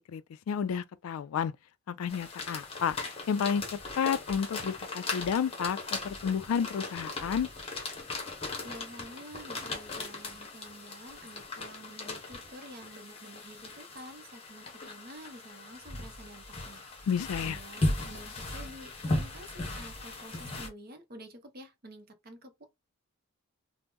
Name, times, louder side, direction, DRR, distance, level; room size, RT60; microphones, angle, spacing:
voice 1, 0.5-1.5 1.9-3.0 3.3-5.8 6.0-7.5 17.1-17.6, left 7 dB, 80° left, 0.3 m, -31 dB
sound 1, 2.1-20.7, left 2 dB, 25° left, 0.7 m, -38 dB
voice 2, 8.6-22.7, right 1 dB, 45° right, 0.7 m, -49 dB
2.9 x 2.0 x 3.4 m
head